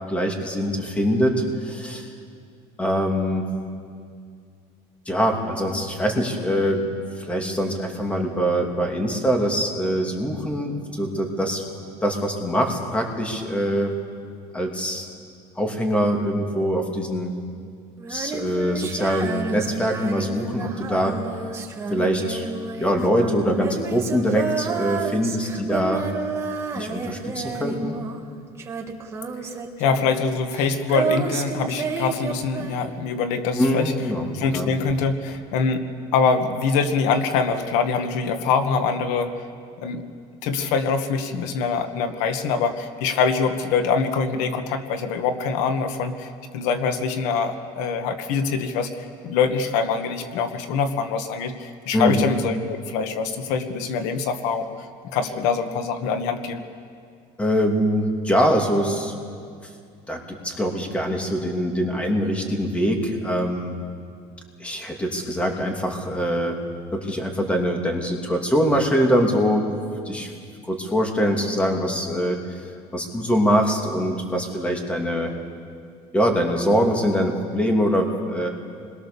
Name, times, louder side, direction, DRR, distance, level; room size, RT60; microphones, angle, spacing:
voice 1, 0.1-2.1 2.8-3.5 5.1-6.9 7.2-11.6 12.0-13.9 14.5-15.1 15.6-17.3 18.1-21.2 21.9-22.5 22.8-26.1 26.7-27.9 33.6-34.3 34.5-34.7 51.9-52.2 57.4-59.1 60.1-63.7 64.6-66.6 66.9-69.7 70.0-70.3 70.6-72.7 72.9-75.3 76.1-78.5, equal, 10° left, 2 dB, 2.7 m, -23 dB
Female singing, 18.0-33.3 34.9-35.0, right 5 dB, 20° right, 2.0 m, -30 dB
voice 2, 29.8-33.9 34.3-39.3 39.8-40.0 40.4-54.9 55.1-56.6, left 5 dB, 80° left, 7 dB, 1.7 m, -24 dB
29.0 x 21.5 x 7.0 m, 2.3 s
cardioid pair, 150°, 12 cm